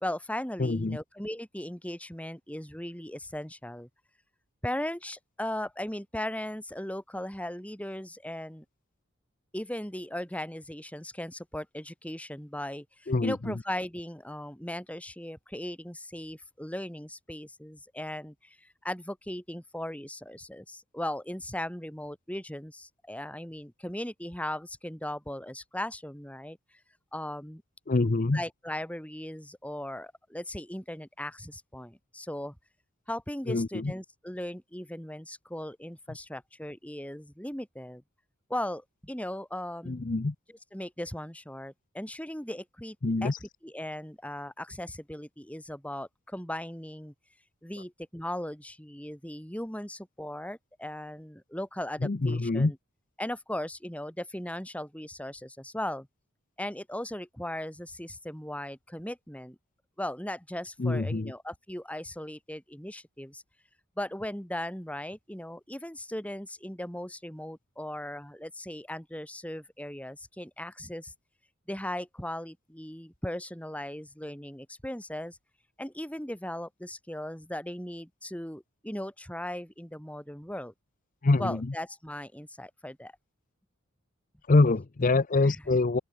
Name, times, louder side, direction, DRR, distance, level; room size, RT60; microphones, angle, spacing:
voice 1, 0.0-3.9 4.6-8.6 9.5-26.6 27.1-27.6 28.3-32.6 33.1-38.0 38.5-40.1 40.7-43.0 43.2-47.1 47.6-52.8 53.2-56.1 56.6-59.6 60.0-63.4 64.0-71.1 71.7-75.4 75.8-80.7 81.4-83.1 85.4-85.6, left 1 dB, 5° left, 3.1 m, -38 dB
voice 2, 0.6-1.0 13.1-13.6 27.9-28.4 33.5-33.9 39.9-40.3 43.0-43.4 52.0-52.7 60.8-61.3 81.2-81.7 84.5-86.0, left 3 dB, 40° left, 0.6 m, -25 dB
open air
head